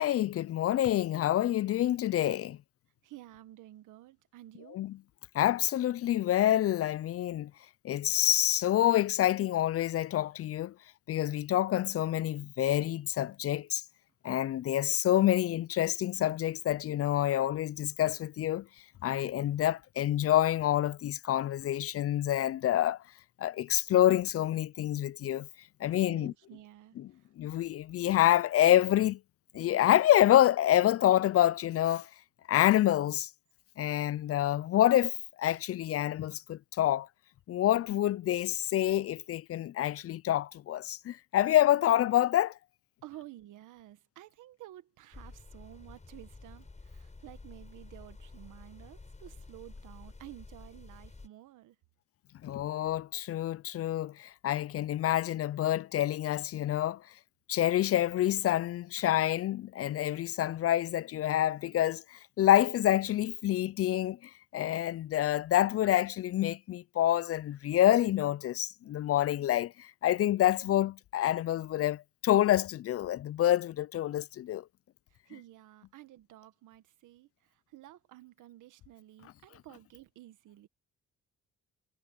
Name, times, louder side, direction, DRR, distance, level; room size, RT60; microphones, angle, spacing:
voice 1, 0.0-2.6 4.7-5.0 5.3-7.5 7.8-10.7 11.1-13.8 14.2-18.7 19.0-23.0 23.4-25.5 25.8-26.3 27.4-29.2 29.5-32.1 32.5-33.3 33.8-37.1 37.5-42.6 52.4-57.0 57.5-74.6, left 12 dB, 50° left, 0.4 m, -27 dB
voice 2, 3.0-4.8 25.9-27.3 43.0-51.8 75.1-80.7, right 15 dB, 85° right, 1.6 m, -52 dB
sound 1, 45.1-51.3, left 3 dB, 25° left, 7.4 m, -50 dB
cardioid pair, 90°, 30 cm